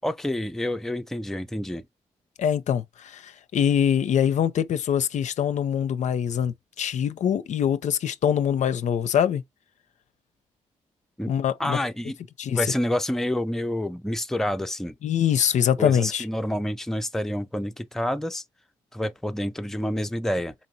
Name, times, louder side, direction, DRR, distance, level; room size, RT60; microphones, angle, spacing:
voice 1, 0.0-1.8 11.2-11.3 11.6-12.2 12.5-14.9 15.8-18.4 18.9-20.5, left 1 dB, 5° left, 0.4 m, -28 dB
voice 2, 2.4-9.4 11.3-11.8 12.4-12.6 15.0-16.2, left 9 dB, 60° left, 0.4 m, -24 dB
4.1 x 3.0 x 2.6 m
supercardioid pair, 50°, 13 cm